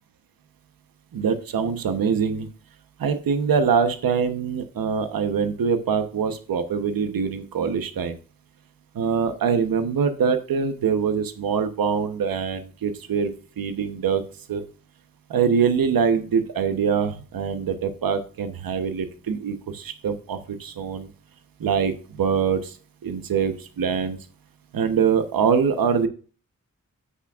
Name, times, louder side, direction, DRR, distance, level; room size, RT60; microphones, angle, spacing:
voice 1, 1.1-2.5 3.0-8.2 8.9-13.3 13.6-14.2 14.5-14.6 15.3-21.1 21.6-22.7 23.0-24.2 24.7-26.1, right 6 dB, 85° right, 8 dB, 1.0 m, -24 dB
9.7 x 8.6 x 2.4 m, 0.39 s
wide cardioid pair, 145°, 34 cm